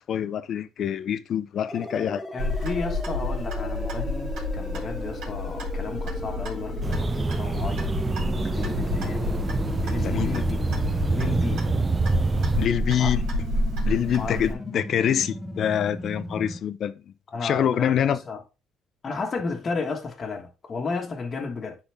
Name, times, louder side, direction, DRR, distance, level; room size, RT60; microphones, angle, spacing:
voice 1, 0.1-2.2 10.0-10.4 12.6-13.3 13.8-17.0 17.4-18.2, left 9 dB, 55° left, 0.6 m, -25 dB
sound 1, 1.7-16.6, left 1 dB, 10° left, 1.0 m, -37 dB
voice 2, 2.3-7.9 8.4-9.3 9.8-10.7 11.1-11.7 13.0-13.1 14.1-14.6 17.3-18.4 19.0-21.8, left 4 dB, 35° left, 1.4 m, -33 dB
Clock, 2.4-14.5, left 2 dB, 65° right, 2.8 m, -30 dB
sound 2, 6.8-12.7, right 4 dB, 25° right, 0.4 m, -26 dB
9.8 x 3.8 x 3.4 m
cardioid pair, 125°, 0 cm